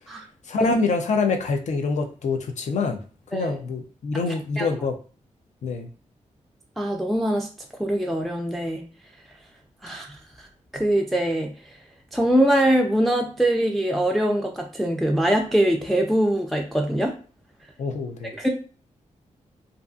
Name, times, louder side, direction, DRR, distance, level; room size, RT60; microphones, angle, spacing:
voice 1, 0.5-3.0 3.3-4.9 5.6-5.9 17.8-18.3, left 4 dB, 65° left, 5 dB, 0.5 m, -25 dB
voice 2, 6.8-7.5 7.8-8.8 9.8-10.1 10.7-11.5 12.1-17.2 18.4-18.5, right 1 dB, ahead, 2 dB, 0.3 m, -22 dB
2.5 x 2.4 x 2.3 m, 0.38 s
cardioid pair, 85°, 13 cm